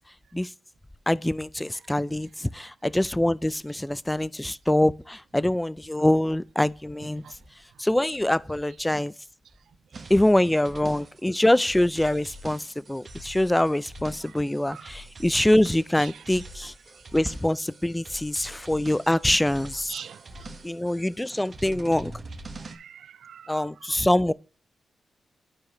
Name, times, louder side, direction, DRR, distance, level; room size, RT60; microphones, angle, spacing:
voice 1, 1.1-7.2 7.8-9.1 10.1-16.7 17.1-20.0 20.6-22.1 23.5-24.3, left 1 dB, 10° left, 0.4 m, -24 dB
sound 1, 9.9-22.8, right 1 dB, 50° right, 1.3 m, -44 dB
voice 2, 16.0-16.4 19.9-20.5 22.6-23.6, right 8 dB, 75° right, 0.3 m, -43 dB
11.5 x 4.8 x 3.0 m
cardioid pair, 55°, 0 cm